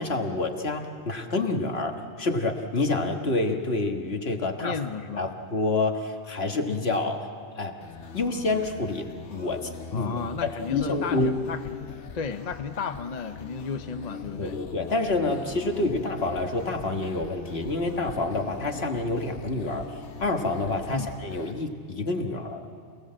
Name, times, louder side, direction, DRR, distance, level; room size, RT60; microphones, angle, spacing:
voice 1, 0.0-4.8 5.2-7.3 7.6-7.7 8.1-10.1 10.4-11.4 14.4-19.8 20.2-22.7, left 2 dB, 65° left, 3 dB, 1.9 m, -28 dB
voice 2, 4.6-5.3 9.9-14.6 20.9-21.1, left 6 dB, 45° left, 8 dB, 0.7 m, -34 dB
sound 1, 7.8-21.5, left 5 dB, 80° left, 1.4 m, -42 dB
27.5 x 18.0 x 7.6 m, 2.2 s
omnidirectional pair, 1.2 m